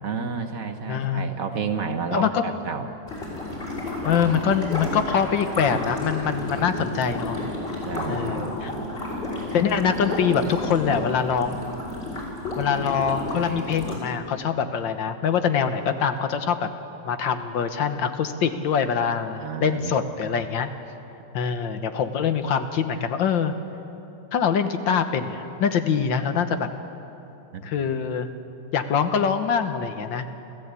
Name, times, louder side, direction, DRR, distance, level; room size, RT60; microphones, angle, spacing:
voice 1, 0.0-2.9 6.3-6.8 7.8-8.9 19.4-20.0 27.5-27.6, right 5 dB, 50° right, 6 dB, 1.5 m, -31 dB
voice 2, 0.9-1.4 2.1-2.5 4.1-7.4 8.1-8.7 9.5-11.6 12.6-16.7 17.1-20.7 21.3-23.5 24.3-26.7 27.6-28.3 28.7-30.3, left 7 dB, 85° left, 8 dB, 1.9 m, -24 dB
sound 1, 3.1-14.0, left 2 dB, 30° left, 6.1 m, -31 dB
29.5 x 14.5 x 8.3 m, 2.9 s
omnidirectional pair, 2.0 m